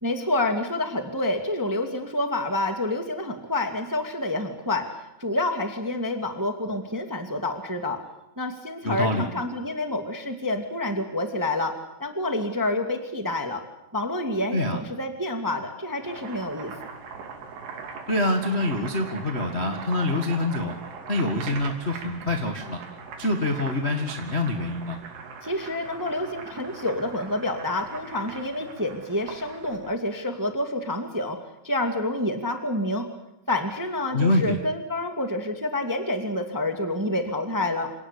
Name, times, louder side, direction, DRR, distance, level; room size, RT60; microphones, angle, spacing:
voice 1, 0.0-4.9 5.2-8.0 8.4-11.7 12.0-13.6 13.9-16.7 25.4-31.4 31.6-33.1 33.5-37.9, left 1 dB, 10° right, 6 dB, 0.9 m, -28 dB
voice 2, 8.8-9.2 14.5-14.8 18.1-20.7 21.1-22.8 23.2-25.0 34.1-34.6, left 2 dB, 55° left, 3 dB, 0.7 m, -25 dB
Boiling, 15.8-29.9, right 5 dB, 90° right, 5.1 m, -41 dB
27.5 x 18.0 x 8.5 m, 0.90 s
omnidirectional pair, 4.7 m